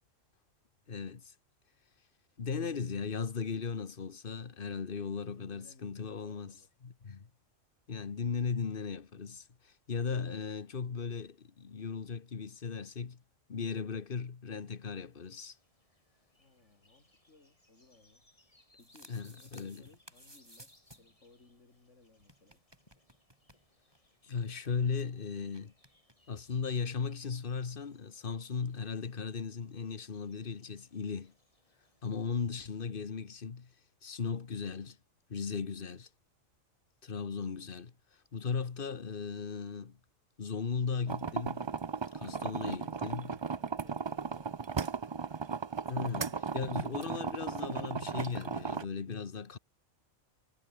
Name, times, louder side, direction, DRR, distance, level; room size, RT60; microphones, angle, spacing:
voice 1, 0.9-1.3 2.4-6.5 6.8-7.3 7.9-13.2 13.5-15.6 19.1-19.8 24.2-25.7 26.3-31.3 32.0-33.7 34.0-35.0 35.3-36.1 37.0-37.9 38.3-40.0 40.4-41.7 42.1-43.3 45.9-49.6, left 5 dB, 45° left, 1.5 m, -37 dB
voice 2, 5.1-6.8 16.4-22.6 42.3-44.7, left 3 dB, 70° left, 3.8 m, -63 dB
sound 1, 14.9-32.7, left 1 dB, 25° left, 4.3 m, -70 dB
sound 2, 18.6-21.2 21.5-21.6 21.7-21.8 22.2-24.1 24.3-24.4 24.6-25.1 25.5-26.1, right 1 dB, 20° right, 5.1 m, -58 dB
sound 3, 41.1-48.8, right 5 dB, 35° right, 0.4 m, -36 dB
omnidirectional pair, 1.3 m